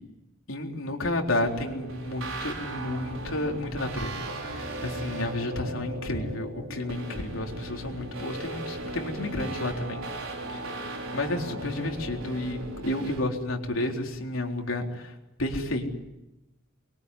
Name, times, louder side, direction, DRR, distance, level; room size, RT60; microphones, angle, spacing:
voice 1, 0.5-4.1 4.4-10.1 11.1-14.9 15.4-15.9, left 1 dB, 75° left, 1 dB, 3.9 m, -31 dB
sound 1, 1.3-13.2, right 1 dB, 75° right, 5.2 m, -37 dB
24.5 x 23.0 x 9.8 m, 0.96 s
head